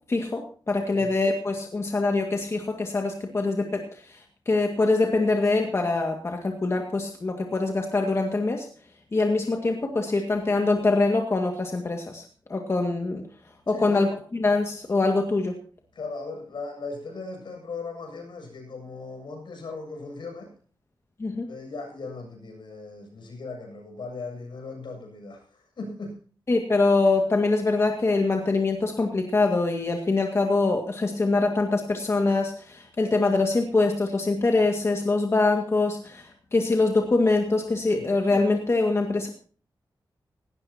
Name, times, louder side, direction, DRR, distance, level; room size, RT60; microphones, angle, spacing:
voice 1, 0.1-8.7 9.1-12.2 12.5-13.2 13.7-15.5 21.2-21.5 26.5-39.3, left 3 dB, 35° left, 2 dB, 2.0 m, -24 dB
voice 2, 13.7-14.0 15.9-20.5 21.5-25.4 25.8-26.2 37.9-38.1, left 3 dB, 75° left, 2 dB, 7.6 m, -38 dB
18.0 x 18.0 x 2.9 m, 0.40 s
wide cardioid pair, 165°, 8 cm